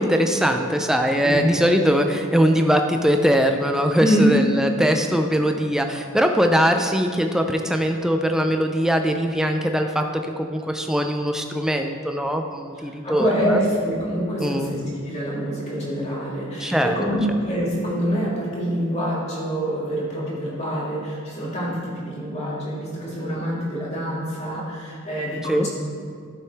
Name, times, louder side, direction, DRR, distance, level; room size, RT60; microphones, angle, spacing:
voice 1, 0.0-13.6 14.4-14.7 16.6-16.9 25.5-25.7, equal, ahead, 4 dB, 0.5 m, -21 dB
voice 2, 4.0-4.4 12.8-25.7, equal, 30° left, -6 dB, 2.3 m, -25 dB
13.0 x 7.4 x 3.5 m, 2.2 s
head